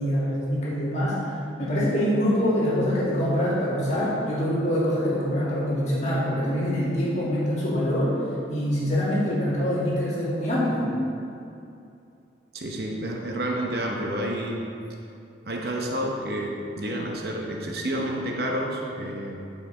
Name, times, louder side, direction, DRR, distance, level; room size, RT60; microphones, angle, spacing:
voice 1, 0.0-8.1 8.5-10.9, equal, 40° left, -8 dB, 2.1 m, -25 dB
voice 2, 12.5-14.7 15.4-19.4, right 1 dB, 60° right, 0 dB, 0.9 m, -29 dB
9.5 x 5.4 x 4.9 m, 2.6 s
head